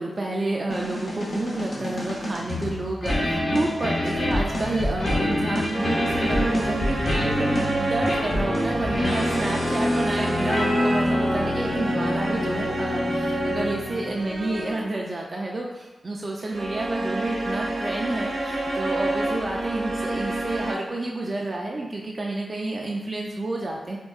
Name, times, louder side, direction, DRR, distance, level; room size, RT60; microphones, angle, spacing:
voice 1, 0.0-24.0, right 2 dB, 45° right, -1 dB, 0.3 m, -30 dB
sound 1, 0.7-14.2, left 1 dB, 60° left, 0.7 m, -27 dB
sound 2, 5.7-15.0 16.5-20.7, right 1 dB, 70° right, 0.7 m, -28 dB
3.6 x 2.2 x 2.3 m, 1.1 s
supercardioid pair, 40°, 0 cm